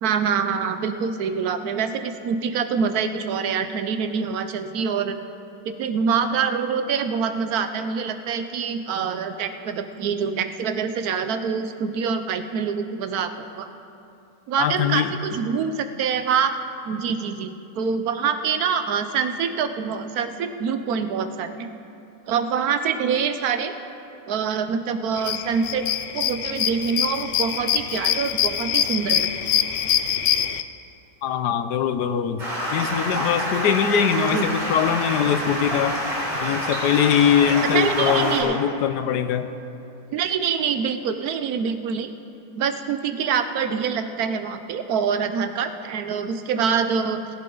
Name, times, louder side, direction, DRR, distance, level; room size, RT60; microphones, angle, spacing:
voice 1, 0.0-5.2 5.6-13.7 14.5-16.6 16.9-21.7 22.3-23.7 24.3-25.9 26.1-29.3 34.3-34.5 37.6-38.6 40.1-42.1 42.5-47.2, right 6 dB, 70° right, 9 dB, 1.2 m, -25 dB
voice 2, 14.6-15.1 31.2-32.4 32.7-36.0 36.4-39.5, left 8 dB, 90° left, 10 dB, 1.3 m, -22 dB
sound 1, 25.2-30.6, left 10 dB, 70° left, 0.7 m, -24 dB
Stream, 32.4-38.4, equal, 50° right, 4.5 m, -27 dB
20.0 x 11.0 x 3.9 m, 2.7 s
omnidirectional pair, 1.7 m